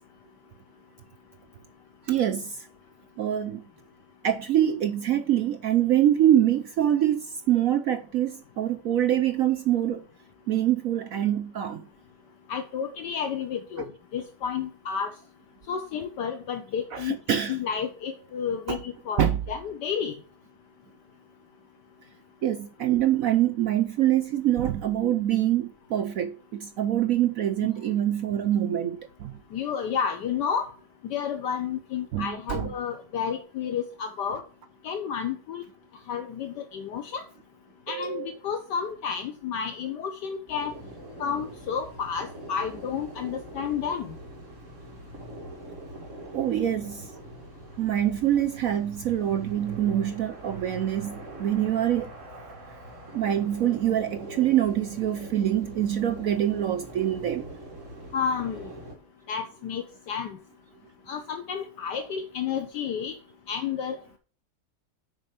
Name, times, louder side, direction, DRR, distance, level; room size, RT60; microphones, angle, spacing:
voice 1, 2.1-2.7 3.2-3.6 4.2-10.0 10.5-11.9 16.9-17.6 18.7-18.8 19.2-19.4 22.4-29.4 32.1-32.7 37.9-38.3 46.3-47.1 47.8-52.1 53.1-57.5, right 11 dB, 70° right, 0.8 m, -25 dB
voice 2, 12.5-13.9 14.1-15.1 15.7-17.2 17.5-20.1 29.5-30.7 31.0-34.4 34.8-35.6 36.1-37.2 37.9-40.7 41.2-44.1 58.1-58.6 59.3-60.3 61.1-63.1 63.5-64.2, left 7 dB, 70° left, 1.4 m, -31 dB
sound 1, 40.5-59.0, right 1 dB, 40° right, 2.5 m, -43 dB
7.6 x 5.3 x 5.1 m
omnidirectional pair, 2.0 m